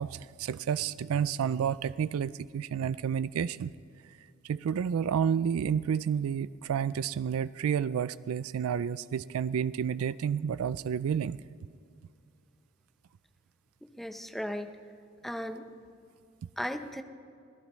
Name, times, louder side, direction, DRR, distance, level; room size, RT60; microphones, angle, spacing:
voice 1, 0.0-3.7 4.4-11.4, right 7 dB, 85° right, 17 dB, 0.3 m, -30 dB
voice 2, 14.0-14.7 15.2-15.6 16.6-17.0, equal, ahead, 6 dB, 0.7 m, -36 dB
26.0 x 17.5 x 3.1 m, 2.4 s
head